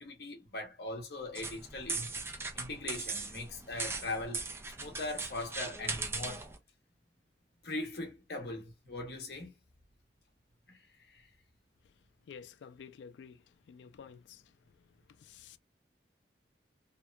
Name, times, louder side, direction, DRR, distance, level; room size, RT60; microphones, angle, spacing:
voice 1, 0.0-2.1 2.5-4.4 4.8-6.5 7.6-9.5 10.7-10.8 11.1-11.3, left 2 dB, 65° left, 0.8 m, -40 dB
sound 1, 1.4-6.6, right 3 dB, 15° right, 0.3 m, -39 dB
voice 2, 12.3-13.3 13.7-14.2, left 6 dB, 85° left, 0.3 m, -49 dB
2.9 x 2.1 x 2.3 m
head